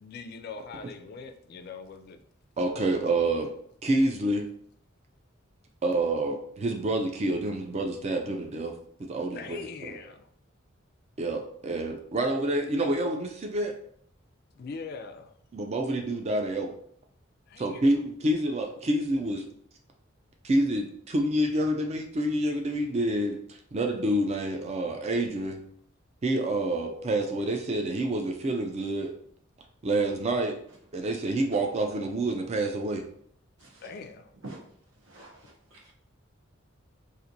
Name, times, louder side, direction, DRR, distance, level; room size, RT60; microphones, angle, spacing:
voice 1, 0.0-2.2 9.3-10.3 14.5-15.3 17.5-17.8 33.8-34.3, left 4 dB, 50° left, 0.3 m, -41 dB
voice 2, 2.6-3.5 3.8-4.5 5.8-8.7 9.1-9.6 9.9-10.0 11.2-13.7 15.5-16.7 17.6-19.4 20.4-25.6 26.2-29.1 29.8-30.6 30.9-33.0, right 1 dB, 30° right, 0.4 m, -28 dB
voice 3, 33.6-34.0 34.4-35.9, right 2 dB, 70° right, 0.8 m, -48 dB
4.2 x 2.5 x 2.6 m
head